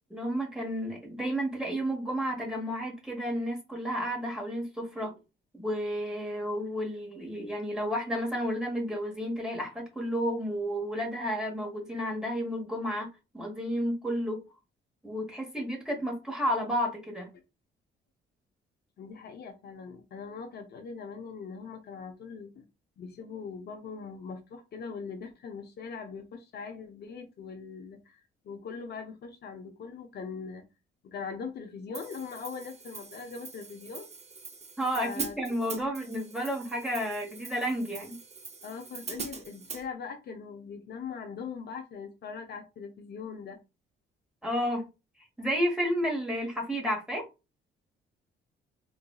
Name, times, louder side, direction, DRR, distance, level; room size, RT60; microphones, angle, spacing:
voice 1, 0.1-5.1 5.5-13.1 13.3-14.4 15.0-17.3 34.8-38.2 44.4-44.9 45.4-47.2, equal, 5° right, 1.3 m, -31 dB
voice 2, 19.0-22.7 23.0-30.6 31.0-34.1 35.0-35.3 35.8-35.9 38.6-43.6, left 5 dB, 55° left, 0.6 m, -41 dB
Hi-hat, 31.9-39.8, right 5 dB, 35° right, 0.7 m, -43 dB
3.8 x 2.5 x 2.3 m
cardioid pair, 90°, 20 cm